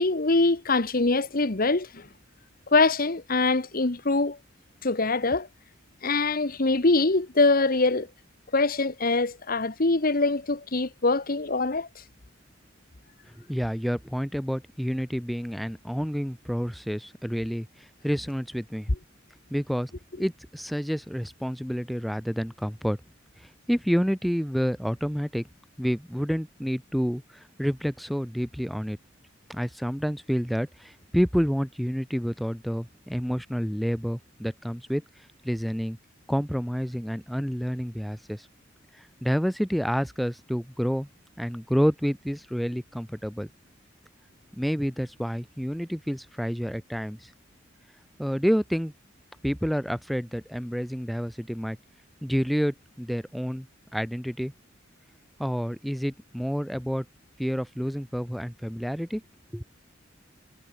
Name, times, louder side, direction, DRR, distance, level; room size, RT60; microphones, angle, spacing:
voice 1, 0.0-2.1 2.7-4.4 4.8-5.5 6.0-8.1 8.5-12.0, left 3 dB, 45° left, 1.3 m, -23 dB
voice 2, 13.4-18.9 19.5-19.9 20.2-23.0 23.4-25.5 25.8-29.0 29.5-35.0 35.4-36.0 36.3-38.5 38.9-41.1 41.4-43.5 44.5-47.3 48.2-48.9 49.4-51.8 52.2-53.7 53.9-54.5 55.4-57.0 57.4-59.2 59.5-59.6, equal, ahead, 0.8 m, -29 dB
head